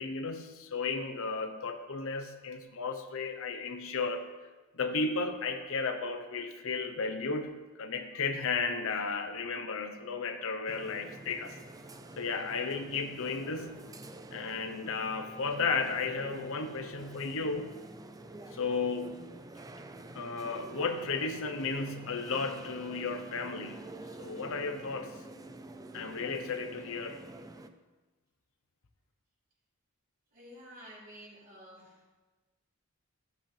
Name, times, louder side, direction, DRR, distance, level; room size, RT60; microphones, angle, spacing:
voice 1, 0.0-4.3 4.7-7.5 7.8-11.6 12.2-13.8 14.3-17.8 18.5-19.2 20.1-23.8 24.2-25.1 25.9-27.2, left 4 dB, 65° left, 7 dB, 0.8 m, -34 dB
sound 1, 10.7-27.7, right 2 dB, 15° right, 0.5 m, -48 dB
voice 2, 30.3-32.0, equal, 40° right, -6 dB, 3.7 m, -51 dB
14.0 x 8.3 x 3.3 m, 1.2 s
head